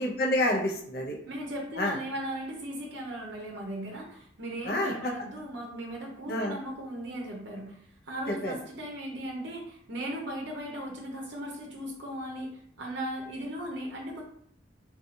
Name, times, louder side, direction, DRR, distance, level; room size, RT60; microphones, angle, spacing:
voice 1, 0.0-1.2 1.8-2.0 4.6-5.1 6.3-6.6 8.4-8.5, left 1 dB, 50° left, 0 dB, 0.5 m, -28 dB
voice 2, 1.3-7.8 8.0-14.2, right 1 dB, 70° right, -2 dB, 0.6 m, -37 dB
2.7 x 2.3 x 2.7 m, 0.62 s
head